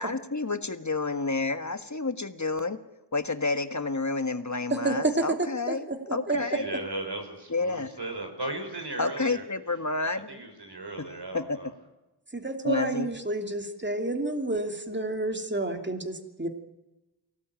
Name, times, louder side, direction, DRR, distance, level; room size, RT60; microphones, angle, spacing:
voice 1, 0.0-2.8 3.1-5.8 6.1-6.6 7.5-7.9 9.0-10.3 11.0-11.6 12.6-13.1, left 3 dB, 45° left, 9 dB, 1.6 m, -30 dB
voice 2, 4.7-6.4 10.3-10.4 12.3-16.5, right 2 dB, 25° right, 5 dB, 2.8 m, -30 dB
voice 3, 6.3-9.4 10.3-11.7, right 2 dB, 75° right, 5 dB, 5.3 m, -37 dB
24.0 x 17.5 x 9.0 m, 1.1 s
wide cardioid pair, 45°, 40 cm